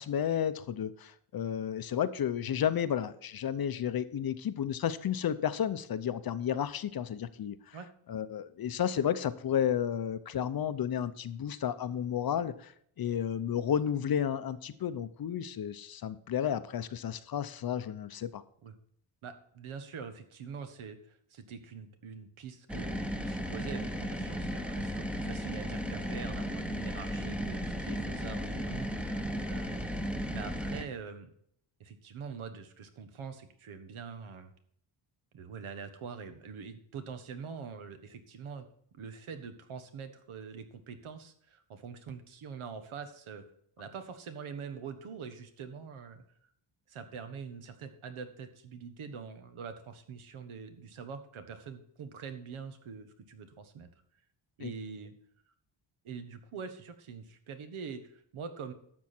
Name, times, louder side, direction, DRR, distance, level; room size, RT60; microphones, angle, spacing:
voice 1, 0.0-7.8 8.1-12.7 13.0-18.4 54.6-54.7, left 9 dB, 50° left, 13 dB, 0.7 m, -32 dB
voice 2, 19.2-31.3 31.8-34.5 35.3-38.6 38.9-43.4 43.8-46.2 46.9-53.9 54.6-55.1 56.0-58.7, right 6 dB, 85° right, 8 dB, 1.5 m, -44 dB
sound 1, 22.7-30.8, equal, ahead, 0.8 m, -35 dB
12.0 x 7.1 x 4.4 m, 0.67 s
wide cardioid pair, 155°, 48 cm